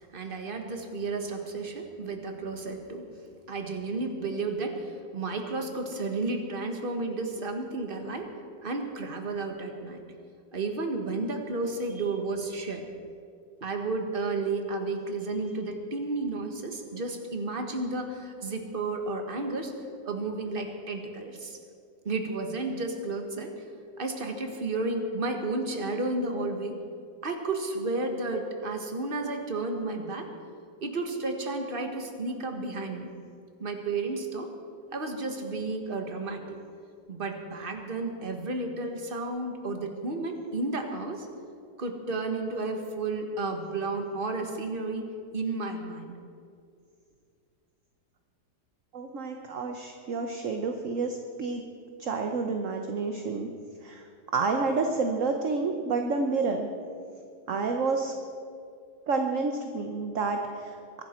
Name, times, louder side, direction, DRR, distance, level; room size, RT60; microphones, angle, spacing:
voice 1, 0.1-3.1 3.5-8.3 8.6-10.0 10.5-12.9 13.6-19.7 20.0-21.6 22.0-23.6 24.0-26.8 27.2-30.3 30.8-33.1 33.6-34.5 34.9-36.6 37.1-41.3 41.8-46.1, right 3 dB, 30° right, 4 dB, 1.5 m, -32 dB
voice 2, 48.9-51.6 52.0-53.5 53.8-54.0 54.3-56.7 57.5-58.1 59.1-61.0, right 4 dB, 50° right, 4 dB, 1.2 m, -29 dB
23.0 x 12.0 x 4.5 m, 2.4 s
omnidirectional pair, 2.0 m